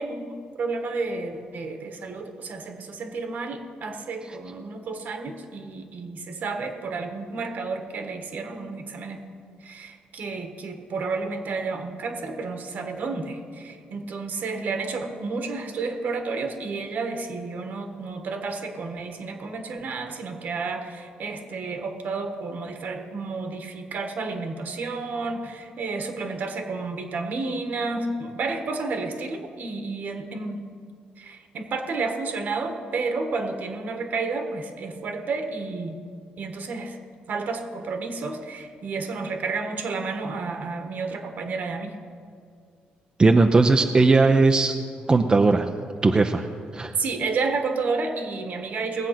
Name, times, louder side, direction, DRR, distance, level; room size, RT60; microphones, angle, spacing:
voice 1, 0.0-9.2 9.6-30.6 31.2-36.0 36.4-37.0 37.3-41.9 47.0-49.1, right 4 dB, 65° right, 5 dB, 1.7 m, -31 dB
voice 2, 43.2-44.7 45.1-45.7 46.0-46.5 46.7-46.9, right 3 dB, 25° right, 4 dB, 0.7 m, -18 dB
19.0 x 7.7 x 5.9 m, 2.2 s
cardioid pair, 85°, 3 cm